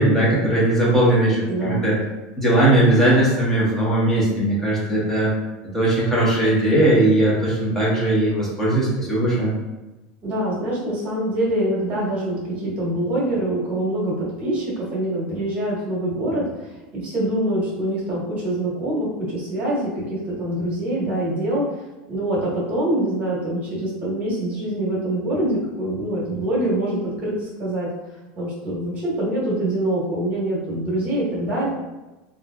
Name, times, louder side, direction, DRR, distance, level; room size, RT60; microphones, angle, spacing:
voice 1, 0.0-2.0 2.4-5.3 5.7-9.5, right 1 dB, 10° left, -7 dB, 1.1 m, -19 dB
voice 2, 1.4-1.9 10.2-21.8 22.1-27.9 28.4-31.7, right 1 dB, 35° right, -6 dB, 1.3 m, -25 dB
3.1 x 2.6 x 2.3 m, 1.1 s
supercardioid pair, 130°, 4 cm